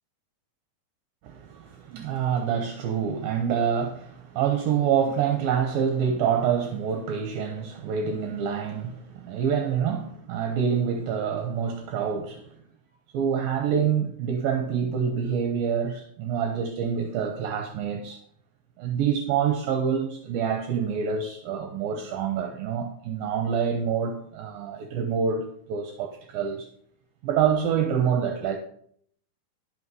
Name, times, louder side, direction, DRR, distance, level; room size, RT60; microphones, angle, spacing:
voice 1, 1.2-12.5 13.1-18.2 18.8-26.7 27.2-28.6, right 7 dB, 75° right, 2.6 m, -26 dB
12.5 x 6.0 x 5.4 m
omnidirectional pair, 4.4 m